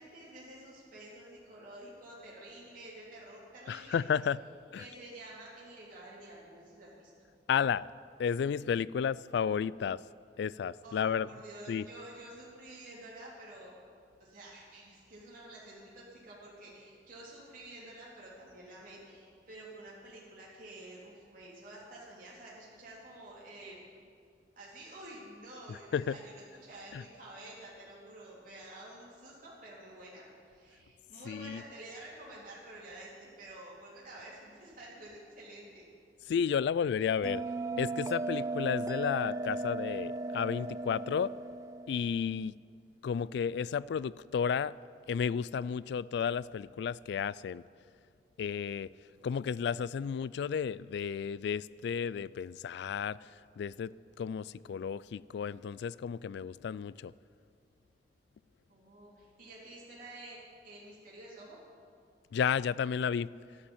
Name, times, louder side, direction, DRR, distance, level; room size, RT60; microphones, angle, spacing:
voice 1, 0.0-4.0 4.7-7.1 10.8-13.8 14.2-23.8 24.5-35.9 58.7-60.4 60.6-61.6, right 1 dB, 50° right, -6 dB, 3.5 m, -50 dB
voice 2, 3.7-4.4 4.7-4.8 7.5-7.9 8.2-10.0 10.4-11.3 11.7-11.9 25.9-26.2 26.9-27.0 31.3-31.6 36.3-37.4 37.8-41.3 41.9-42.5 43.0-44.7 45.1-47.6 48.4-48.9 49.2-53.2 53.6-53.9 54.2-57.1 62.3-63.3, left 7 dB, 70° left, 20 dB, 0.3 m, -32 dB
Bell, 37.2-42.3, right 2 dB, 20° right, 0.3 m, -36 dB
12.5 x 11.5 x 7.2 m, 2.2 s
head